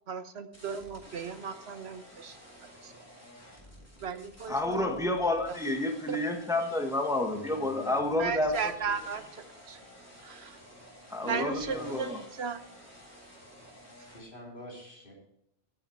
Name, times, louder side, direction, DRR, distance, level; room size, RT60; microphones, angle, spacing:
voice 1, 0.1-2.4 2.8-2.9 4.0-5.0 6.1-6.2 8.2-9.8 10.2-10.6 11.3-12.1 12.4-12.6, right 5 dB, 80° right, 9 dB, 1.3 m, -35 dB
sound 1, 0.5-14.2, equal, 15° left, 3.7 m, -52 dB
voice 2, 4.5-8.5 11.1-12.2, left 1 dB, 5° right, 3 dB, 1.4 m, -29 dB
voice 3, 7.3-8.5 11.2-12.3 14.1-15.1, equal, 55° left, -3 dB, 4.1 m, -45 dB
15.5 x 8.8 x 4.6 m, 0.78 s
omnidirectional pair, 1.1 m